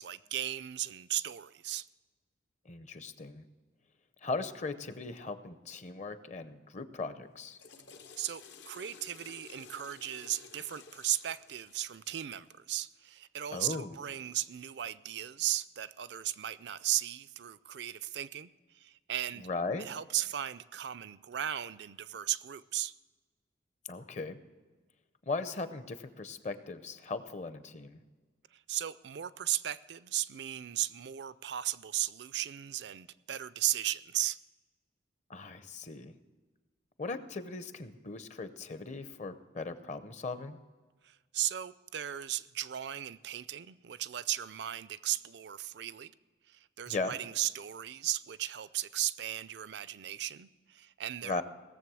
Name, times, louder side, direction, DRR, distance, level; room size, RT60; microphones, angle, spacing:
voice 1, 0.0-1.9 8.2-19.5 19.8-22.9 28.5-34.4 41.0-46.1 46.5-51.4, right 12 dB, 65° right, 17 dB, 0.4 m, -36 dB
voice 2, 2.7-3.4 4.2-7.6 13.5-14.0 19.4-19.9 23.9-24.4 25.3-28.0 35.3-36.1 37.0-40.6 46.9-47.1 51.2-51.4, left 3 dB, 40° left, 11 dB, 0.7 m, -38 dB
Water / Toilet flush, 7.3-12.6, left 5 dB, 70° left, 0.9 m, -54 dB
17.5 x 7.3 x 6.2 m, 1.3 s
head